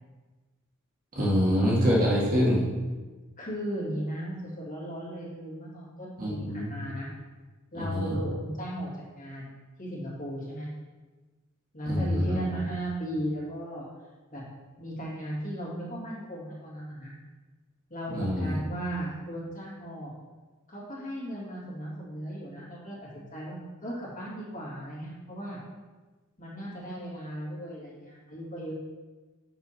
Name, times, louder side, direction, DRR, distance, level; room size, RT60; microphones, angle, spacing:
voice 1, 1.1-2.6 6.2-6.7 7.7-8.1 11.9-12.4 18.1-18.6, equal, 40° right, -5 dB, 1.8 m, -25 dB
voice 2, 3.4-7.1 7.7-10.7 11.7-13.9 14.3-14.4 14.8-17.1 17.9-20.1 20.7-25.6 26.4-28.7, right 1 dB, 40° left, -6 dB, 2.5 m, -36 dB
6.2 x 6.0 x 4.5 m, 1.3 s
head